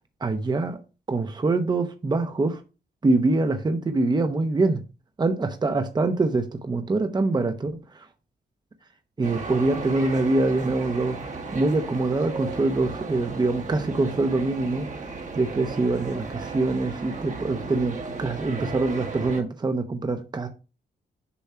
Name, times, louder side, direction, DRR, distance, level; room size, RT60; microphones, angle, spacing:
voice 1, 0.2-0.8 1.1-2.6 3.0-4.8 5.2-7.8 9.2-14.9 15.3-20.5, right 3 dB, 25° right, 0.8 m, -24 dB
sound 1, 9.2-19.4, right 3 dB, 45° right, 1.3 m, -35 dB
7.0 x 3.1 x 5.6 m
cardioid pair, 105°, 17 cm